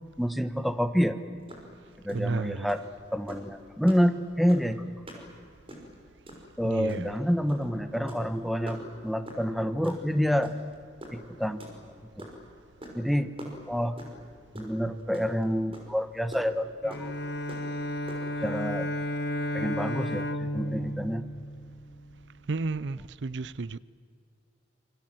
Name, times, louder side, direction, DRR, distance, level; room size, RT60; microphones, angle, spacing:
voice 1, 0.2-1.2 2.0-2.8 3.1-4.9 6.6-10.6 11.1-11.7 12.2-12.3 12.9-13.3 13.7-14.0 14.5-17.1 18.4-18.9 19.5-21.2, equal, ahead, 1.3 m, -28 dB
sound 1, 1.5-1.7 1.9-2.2 2.7-2.9 3.3-3.5 3.9-4.0 4.5-4.7 5.1-5.2 5.5-5.9 6.3-6.4 6.9-7.2 7.5-7.7 7.9-8.2 8.7-8.8 9.3-9.4 9.8-10.0 10.4-10.7 11.0-12.4 12.8-13.1 13.4-14.2 14.6-14.7 15.0-15.4 15.7-15.8 16.3-16.4 16.9-17.0 17.5-17.7 18.1-18.2, right 1 dB, 30° right, 6.0 m, -43 dB
voice 2, 2.1-2.7 6.6-7.1 22.5-23.8, right 3 dB, 70° right, 0.6 m, -32 dB
Bowed string instrument, 16.8-22.1, left 1 dB, 65° left, 1.8 m, -33 dB
27.0 x 25.0 x 7.8 m
head